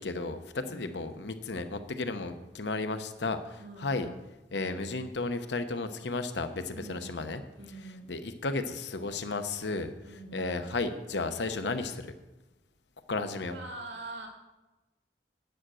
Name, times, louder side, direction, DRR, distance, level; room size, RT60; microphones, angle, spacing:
voice 1, 0.0-4.1 4.5-7.4 7.8-12.1 13.1-13.6, left 3 dB, 80° left, 9 dB, 0.9 m, -34 dB
voice 2, 3.6-4.1 6.7-7.2 7.6-8.1 10.0-10.5 13.4-14.3, right 2 dB, 90° right, 2 dB, 2.4 m, -44 dB
9.3 x 9.0 x 6.3 m, 1.1 s
head